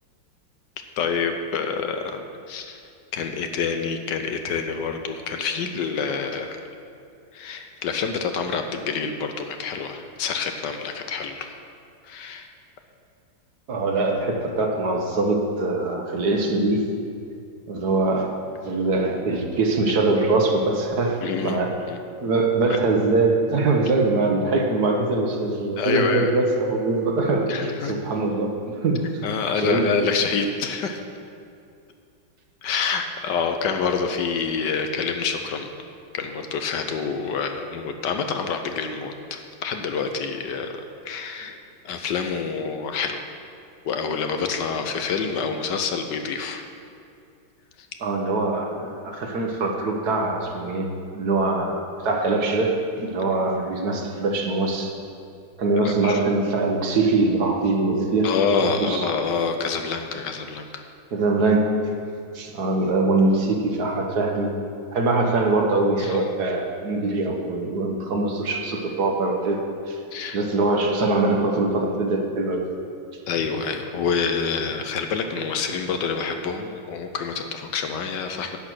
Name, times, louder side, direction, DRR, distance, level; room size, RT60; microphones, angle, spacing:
voice 1, 1.0-2.8 3.1-6.6 7.3-11.5 12.1-12.5 21.2-22.0 22.7-22.8 25.8-26.3 27.5-27.9 29.2-31.0 32.6-35.7 36.1-41.6 41.8-43.2 43.8-46.6 55.8-56.2 58.2-60.8 66.0-66.2 70.1-70.4 73.3-78.6, left 5 dB, 70° left, 6 dB, 1.3 m, -27 dB
voice 2, 13.7-16.9 17.7-18.4 18.6-21.7 22.2-29.1 29.5-29.9 48.0-54.9 55.6-59.0 61.1-61.8 62.3-64.5 64.9-70.0 70.3-72.6, right 3 dB, 60° right, 2 dB, 1.5 m, -23 dB
11.0 x 8.6 x 6.1 m, 2.4 s
omnidirectional pair, 2.1 m